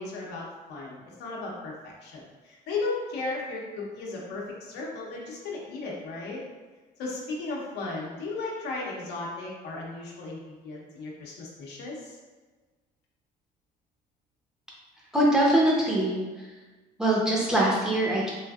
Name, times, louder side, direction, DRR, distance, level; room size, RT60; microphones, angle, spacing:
voice 1, 0.0-1.7 2.0-6.4 7.0-12.2, left 3 dB, 85° left, -3 dB, 0.8 m, -35 dB
voice 2, 15.1-16.2 17.0-18.3, right 1 dB, 5° right, -5 dB, 0.7 m, -22 dB
3.2 x 2.5 x 2.3 m, 1.3 s
cardioid pair, 110°, 17 cm